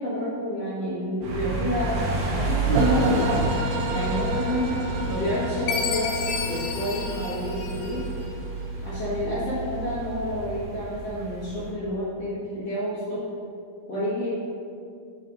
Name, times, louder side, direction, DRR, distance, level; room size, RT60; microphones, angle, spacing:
voice 1, 0.0-2.0 2.4-3.5 3.9-4.6 5.1-8.0 8.8-13.2 13.9-14.3, equal, 55° left, -10 dB, 1.9 m, -29 dB
sound 1, 1.2-11.7, right 3 dB, 65° right, 2.3 m, -31 dB
sound 2, 2.7-8.7, right 1 dB, 80° right, 2.3 m, -30 dB
Chime, 5.7-8.2, left 6 dB, 85° left, 2.5 m, -32 dB
6.7 x 5.5 x 4.8 m, 2.3 s
omnidirectional pair, 4.6 m